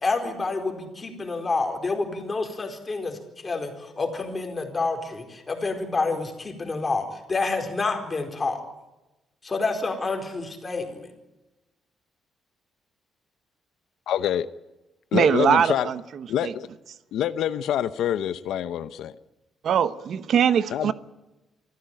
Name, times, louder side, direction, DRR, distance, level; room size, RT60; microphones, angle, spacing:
voice 1, 0.0-8.6 9.4-11.1, left 3 dB, 20° left, 4.4 m, -28 dB
voice 2, 14.1-14.5 15.1-15.9 16.3-16.7 17.1-19.1 20.7-20.9, left 10 dB, 75° left, 0.8 m, -26 dB
voice 3, 15.1-16.5 19.6-20.9, right 8 dB, 55° right, 1.0 m, -22 dB
25.0 x 15.0 x 9.1 m
cardioid pair, 140°, 0 cm